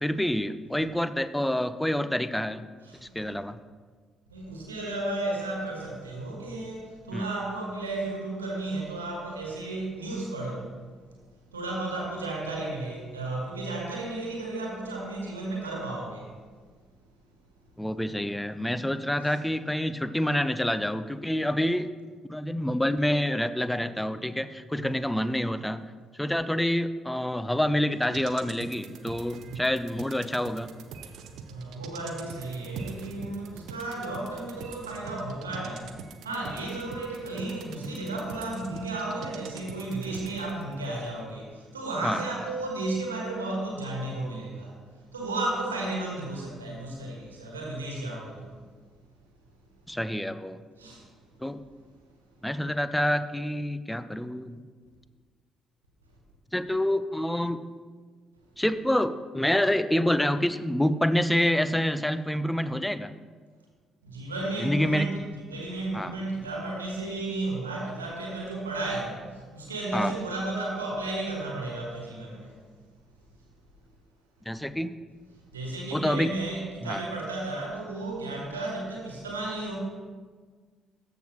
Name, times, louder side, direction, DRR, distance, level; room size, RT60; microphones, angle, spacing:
voice 1, 0.0-2.6 3.0-3.6 7.1-7.3 17.8-21.9 22.3-25.8 26.1-30.7 42.0-42.2 49.9-50.6 51.4-51.6 52.4-54.6 56.5-57.6 58.6-63.1 64.6-65.1 65.9-66.1 69.9-70.1 74.5-75.0 75.9-76.3 76.8-77.0, left 1 dB, 5° left, 13 dB, 0.4 m, -27 dB
voice 2, 4.3-10.8 11.5-16.3 19.2-19.3 24.8-24.9 29.4-29.6 31.5-35.9 36.2-44.8 45.1-48.6 50.8-51.0 64.0-72.5 75.5-79.8, right 2 dB, 80° right, -1 dB, 1.4 m, -33 dB
sound 1, 27.9-40.7 41.1-41.2, right 5 dB, 60° right, 0.6 m, -44 dB
14.0 x 5.9 x 3.1 m, 1.5 s
figure-of-eight pair, 45°, 0 cm